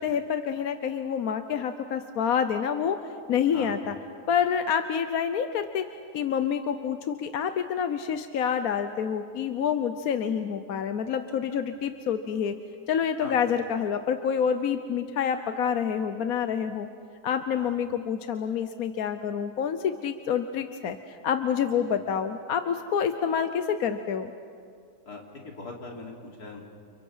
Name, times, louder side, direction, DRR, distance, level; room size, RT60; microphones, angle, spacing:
voice 1, 0.0-3.0 3.3-4.0 4.3-5.9 6.1-12.6 12.9-16.9 17.2-24.3, left 7 dB, 70° left, 9 dB, 1.3 m, -27 dB
voice 2, 25.1-26.6, left 3 dB, 90° left, -1 dB, 4.0 m, -41 dB
30.0 x 30.0 x 5.6 m, 2.3 s
omnidirectional pair, 1.6 m